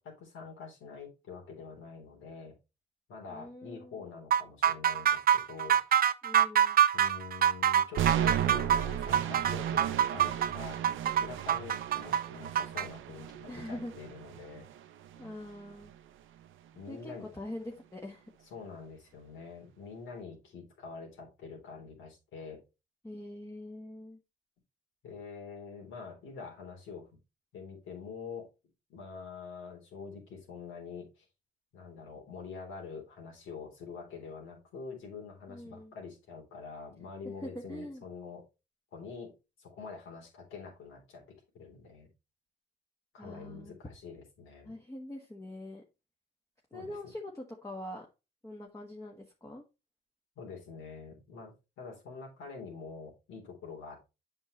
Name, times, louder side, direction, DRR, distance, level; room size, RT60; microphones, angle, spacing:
voice 1, 0.0-2.6 3.1-5.9 6.9-10.8 11.2-14.7 16.7-17.3 18.5-22.6 25.0-27.1 27.5-28.5 28.9-31.3 31.7-38.4 38.9-39.3 39.6-41.2 41.5-42.1 43.1-44.7 46.7-47.1 50.4-54.1, left 5 dB, 85° left, 0 dB, 3.7 m, -46 dB
voice 2, 3.3-4.0 6.2-6.8 13.5-13.9 15.1-15.9 16.9-18.2 23.0-24.2 35.5-35.9 37.4-38.0 43.2-43.8 44.6-45.8 46.7-48.0 48.4-49.6, left 1 dB, 15° left, 0 dB, 1.4 m, -43 dB
sound 1, 4.3-12.9, right 9 dB, 45° right, 0.5 m, -25 dB
sound 2, 8.0-16.0, right 10 dB, 85° right, 0.8 m, -35 dB
7.9 x 5.6 x 3.2 m, 0.27 s
cardioid pair, 90°, 20 cm